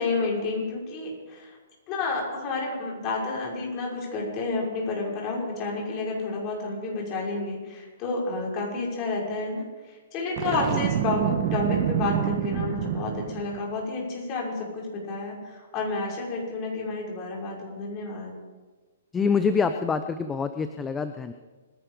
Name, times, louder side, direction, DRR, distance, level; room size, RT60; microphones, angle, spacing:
voice 1, 0.0-1.6 1.9-18.4, left 3 dB, 30° left, -2 dB, 5.9 m, -30 dB
Boom, 10.4-13.6, right 9 dB, 40° right, 1.8 m, -27 dB
voice 2, 19.1-21.3, left 5 dB, 15° left, 9 dB, 0.7 m, -26 dB
25.5 x 11.0 x 5.1 m, 1.3 s
hypercardioid pair, 140°, 0 cm